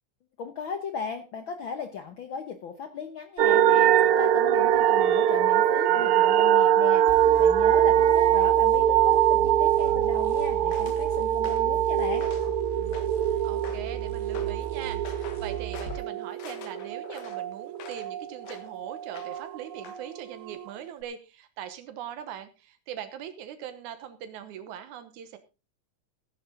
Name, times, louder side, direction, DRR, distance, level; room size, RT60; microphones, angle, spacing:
voice 1, 0.4-12.3, left 6 dB, 60° left, 7 dB, 1.4 m, -37 dB
sound 1, 3.4-18.3 18.6-20.0 20.5-20.6, right 11 dB, 70° right, 1.3 m, -23 dB
sound 2, 7.1-16.0, right 7 dB, 30° left, 2.2 m, -38 dB
sound 3, 10.7-11.0 11.4-11.8 12.2-12.6 12.9-13.3 13.6-14.0 14.3-14.6 15.0-15.4 15.7-16.0 16.4-18.1 18.4-18.7 19.1-19.5 19.8-20.0, left 7 dB, 75° left, 2.9 m, -45 dB
voice 2, 13.4-25.4, right 10 dB, 90° right, 9 dB, 2.5 m, -41 dB
15.0 x 9.8 x 3.8 m, 0.29 s
omnidirectional pair, 3.4 m